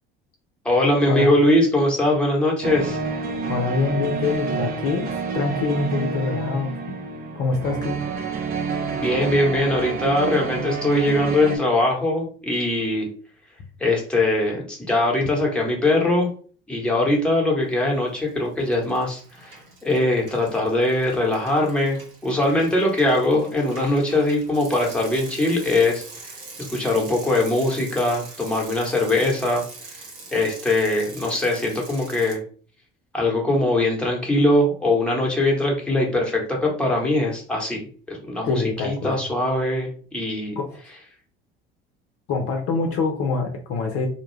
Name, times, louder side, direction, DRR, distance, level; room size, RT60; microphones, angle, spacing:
voice 1, 0.6-3.0 8.9-13.1 13.8-16.3 16.7-26.0 26.7-29.6 30.3-32.4 33.1-40.5, left 1 dB, 5° left, -1 dB, 1.0 m, -21 dB
sound 1, 2.6-11.6, right 5 dB, 30° right, 0.6 m, -29 dB
voice 2, 3.4-7.0 7.3-8.0 38.4-39.2 40.6-40.8 42.3-44.1, left 4 dB, 50° left, 3 dB, 0.7 m, -25 dB
Bicycle, 17.9-18.3 18.6-32.3, right 3 dB, 70° right, 0.9 m, -42 dB
2.2 x 2.1 x 3.1 m, 0.42 s
hypercardioid pair, 65°, 29 cm